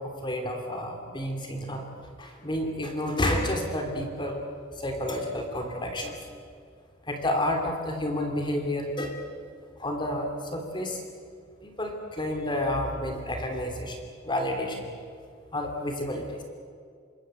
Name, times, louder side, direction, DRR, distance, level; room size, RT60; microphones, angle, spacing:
voice 1, 0.0-1.8 2.2-4.4 4.7-6.2 7.1-9.2 9.8-11.0 11.6-14.9 15.5-16.4, left 1 dB, 25° left, 3 dB, 3.0 m, -30 dB
26.5 x 21.0 x 7.7 m, 2.2 s
head